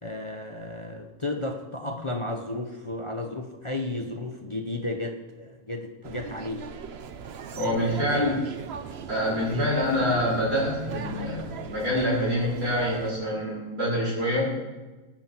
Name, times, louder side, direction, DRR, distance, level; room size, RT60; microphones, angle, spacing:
voice 1, 0.0-6.7 7.6-8.3 9.5-9.7, left 2 dB, 25° left, 4 dB, 0.8 m, -33 dB
sound 1, 6.0-13.1, right 6 dB, 50° right, 0.9 m, -38 dB
voice 2, 7.5-8.4 9.1-14.6, equal, 75° right, -8 dB, 5.0 m, -26 dB
18.0 x 10.0 x 4.5 m, 1.2 s
omnidirectional pair, 1.5 m